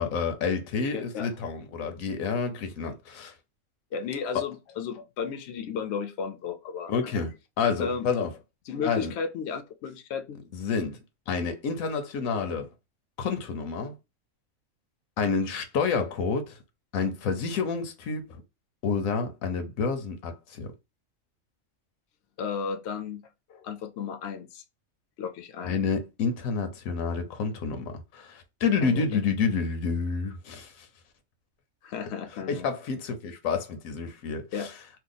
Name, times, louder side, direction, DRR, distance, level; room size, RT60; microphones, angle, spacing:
voice 1, 0.0-3.3 6.9-7.3 7.6-8.3 8.8-9.1 10.5-11.0 11.3-12.7 13.2-13.9 15.2-16.6 16.9-18.4 18.8-20.7 25.6-30.9 32.5-34.7, left 5 dB, 85° left, 1.1 m, -29 dB
voice 2, 0.9-1.3 3.9-7.2 7.8-8.1 8.7-10.4 22.4-24.6 25.2-25.8 28.8-29.1 31.8-32.7 34.5-34.7, left 6 dB, 65° left, 0.8 m, -34 dB
2.8 x 2.2 x 3.8 m
omnidirectional pair, 1.4 m